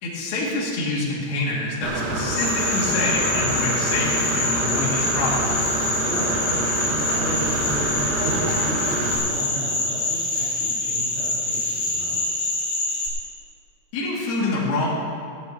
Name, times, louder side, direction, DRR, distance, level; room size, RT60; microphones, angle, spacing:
voice 1, 0.0-5.6 13.9-14.9, left 2 dB, 55° left, -6 dB, 3.9 m, -26 dB
Engine / Mechanisms, 1.8-9.2, right 2 dB, 80° right, 4.0 m, -27 dB
sound 1, 2.3-13.1, left 2 dB, 35° left, 4.6 m, -25 dB
voice 2, 6.0-6.6 6.9-12.3, right 2 dB, 50° right, -13 dB, 5.8 m, -34 dB
16.5 x 15.5 x 3.0 m, 2.4 s
omnidirectional pair, 5.8 m